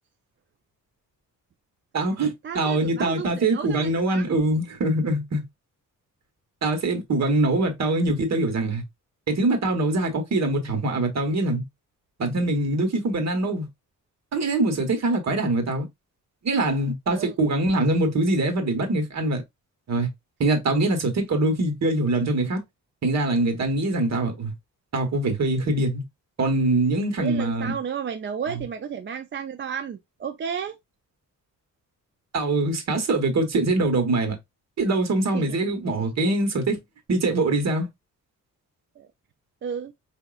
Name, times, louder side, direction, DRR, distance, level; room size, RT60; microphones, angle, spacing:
voice 1, 1.9-5.4 6.6-8.8 9.3-11.6 12.2-13.7 14.3-15.9 16.4-19.4 19.9-20.1 20.4-22.6 23.0-24.5 24.9-26.0 26.4-27.7 28.5-28.6 32.3-34.4 34.8-36.8 37.1-37.9, right 2 dB, 50° right, 1.4 m, -23 dB
voice 2, 2.4-4.4 17.1-17.4 27.2-30.8 35.3-35.6 39.0-39.1 39.6-39.9, right 7 dB, 35° right, 0.4 m, -33 dB
4.9 x 2.8 x 2.4 m
cardioid pair, 115°, 33 cm